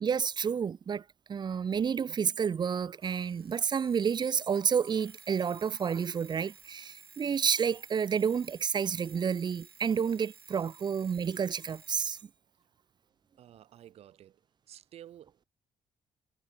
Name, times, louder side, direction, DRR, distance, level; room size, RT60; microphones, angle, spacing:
voice 1, 0.0-1.0 1.3-12.2, right 7 dB, 40° right, 0.7 m, -30 dB
Alarm, 3.0-12.3, right 6 dB, 90° right, 1.1 m, -55 dB
voice 2, 13.4-14.4 14.7-15.5, right 11 dB, 60° right, 3.1 m, -52 dB
figure-of-eight pair, 40°, 12 cm